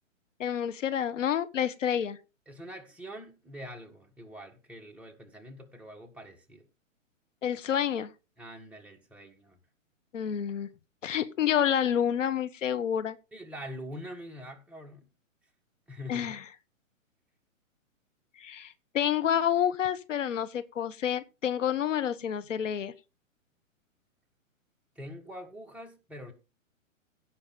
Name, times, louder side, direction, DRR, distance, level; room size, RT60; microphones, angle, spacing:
voice 1, 0.4-2.2 7.4-8.1 10.1-10.7 11.0-13.2 16.1-16.4 18.4-22.9, left 9 dB, 65° left, 1.1 m, -29 dB
voice 2, 2.5-6.6 8.4-9.6 13.3-15.0 15.9-16.4 24.9-26.3, equal, 5° right, 1.6 m, -44 dB
16.5 x 5.8 x 3.8 m
hypercardioid pair, 125°, 40 cm